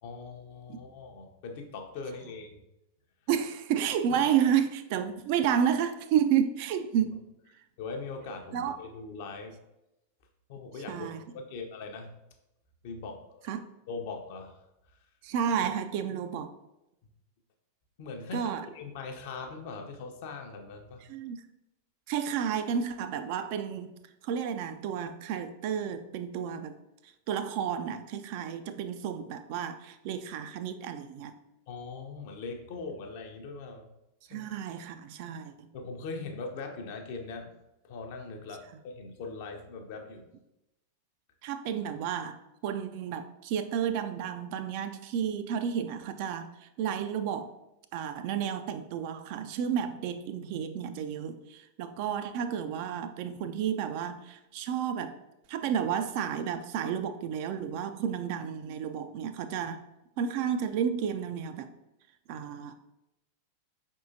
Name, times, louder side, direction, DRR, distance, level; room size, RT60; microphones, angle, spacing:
voice 1, 0.0-2.6 7.8-9.6 10.5-11.1 11.3-12.1 12.8-13.5 13.9-14.6 18.0-21.0 31.7-33.9 34.3-34.5 35.7-37.5 37.8-40.3, left 4 dB, 50° left, 4 dB, 0.6 m, -41 dB
voice 2, 3.3-7.2 8.5-8.8 10.9-11.2 13.5-13.6 15.2-16.5 18.3-18.7 21.1-21.5 22.1-24.0 24.2-26.8 27.3-31.3 34.3-35.7 41.4-42.4 42.6-47.5 47.9-55.2 55.5-59.8 60.2-61.7 62.3-62.7, right 8 dB, 45° right, 9 dB, 0.3 m, -31 dB
4.9 x 3.6 x 2.6 m, 0.91 s
figure-of-eight pair, 90°, 0 cm